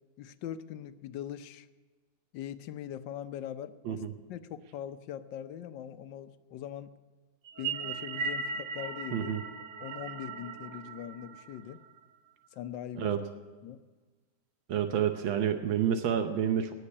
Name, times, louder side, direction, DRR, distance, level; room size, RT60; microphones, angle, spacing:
voice 1, 0.2-1.7 2.3-4.0 4.3-6.9 7.6-9.3 9.8-11.8 12.5-13.1 13.6-13.8, left 10 dB, 75° left, 12 dB, 1.4 m, -41 dB
sound 1, 7.5-12.0, right 5 dB, 65° right, 1.5 m, -38 dB
voice 2, 9.1-9.4 13.0-13.2 14.7-16.7, right 9 dB, 85° right, 7 dB, 1.7 m, -29 dB
18.5 x 6.6 x 9.7 m, 1.3 s
omnidirectional pair, 2.1 m